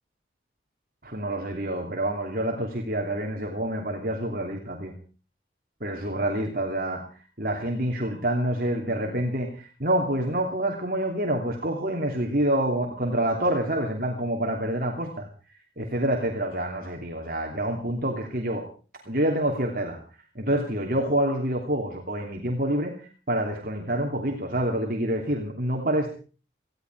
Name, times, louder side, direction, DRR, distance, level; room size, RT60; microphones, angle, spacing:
voice 1, 1.0-4.9 5.8-7.0 7.4-15.3 15.8-18.6 19.1-20.0 20.3-22.9 23.3-26.1, right 1 dB, 50° right, 2 dB, 2.9 m, -27 dB
19.0 x 16.0 x 4.7 m, 0.38 s
head